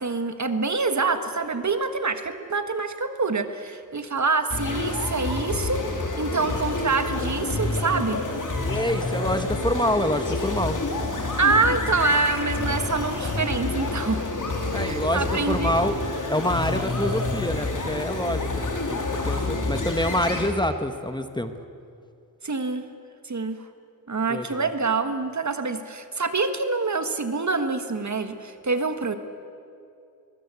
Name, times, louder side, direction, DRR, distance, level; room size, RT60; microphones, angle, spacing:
voice 1, 0.0-5.8 6.2-8.3 11.4-14.3 14.7-16.0 22.4-22.9 23.2-23.6 24.1-29.1, right 4 dB, 50° right, 9 dB, 1.5 m, -26 dB
sound 1, 4.5-20.5, left 2 dB, 60° left, 3.3 m, -28 dB
voice 2, 8.6-10.8 14.7-15.9 16.3-21.5 24.3-24.7, left 1 dB, 10° left, 8 dB, 1.3 m, -26 dB
22.5 x 21.0 x 8.3 m, 2.5 s
wide cardioid pair, 85°, 35 cm